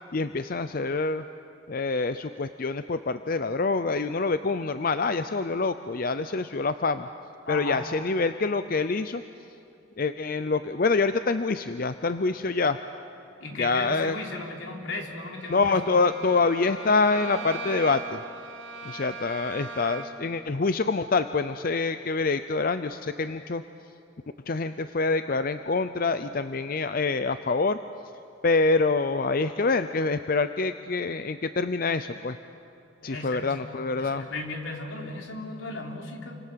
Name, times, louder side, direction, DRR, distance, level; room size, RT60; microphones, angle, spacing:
voice 1, 0.1-1.2 1.7-7.1 7.5-9.2 10.0-12.8 13.6-14.2 15.5-18.2 18.8-23.6 24.5-27.8 28.4-32.4 33.0-34.3, left 3 dB, 45° left, 11 dB, 0.6 m, -26 dB
voice 2, 7.5-7.8 13.4-16.0 33.0-33.5 34.0-36.4, left 2 dB, 80° left, 1 dB, 3.4 m, -36 dB
Bowed string instrument, 15.3-20.3, right 4 dB, 70° right, 3.6 m, -39 dB
29.0 x 26.0 x 7.6 m, 2.6 s
head